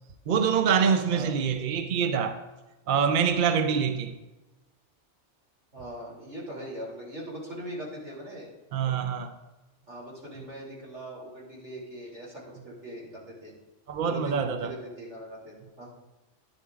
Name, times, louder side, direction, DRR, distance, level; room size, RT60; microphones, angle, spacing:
voice 1, 0.3-2.4 2.9-4.2 8.7-9.3 13.9-14.7, right 7 dB, 55° right, 0.7 m, -25 dB
voice 2, 5.7-8.5 8.8-9.0 9.9-13.5 14.0-15.9, equal, 75° right, 3.2 m, -41 dB
11.5 x 10.5 x 2.4 m
omnidirectional pair, 1.2 m